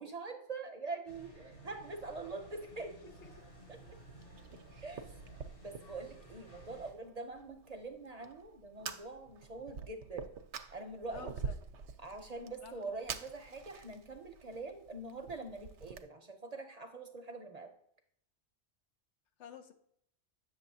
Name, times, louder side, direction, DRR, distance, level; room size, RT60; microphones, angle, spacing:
voice 1, 0.0-3.1 3.7-3.8 4.8-5.0 5.6-10.3 10.7-11.4 12.0-17.7, right 3 dB, 45° right, 5 dB, 0.6 m, -44 dB
sound 1, 1.1-6.9, right 1 dB, 50° left, 1.9 m, -55 dB
Fire, 3.1-16.0, right 6 dB, 85° right, 0.9 m, -47 dB
voice 2, 11.1-11.5 12.6-12.9 19.4-19.7, left 8 dB, 85° left, 7 dB, 1.0 m, -50 dB
8.0 x 6.5 x 2.7 m, 0.71 s
omnidirectional pair, 1.2 m